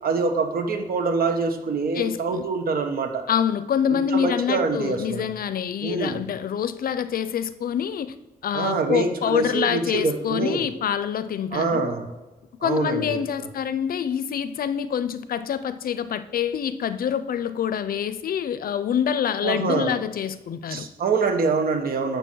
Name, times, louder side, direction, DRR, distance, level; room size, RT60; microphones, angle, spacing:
voice 1, 0.0-3.2 3.9-5.2 5.8-6.2 8.5-10.7 11.5-12.1 12.6-13.2 19.4-19.9 20.7-22.2, right 4 dB, 80° right, 1.2 m, -25 dB
voice 2, 1.9-2.5 3.3-8.1 8.4-11.9 12.6-20.9, left 8 dB, 75° left, 0.5 m, -26 dB
7.0 x 6.9 x 6.2 m
wide cardioid pair, 130°, 15 cm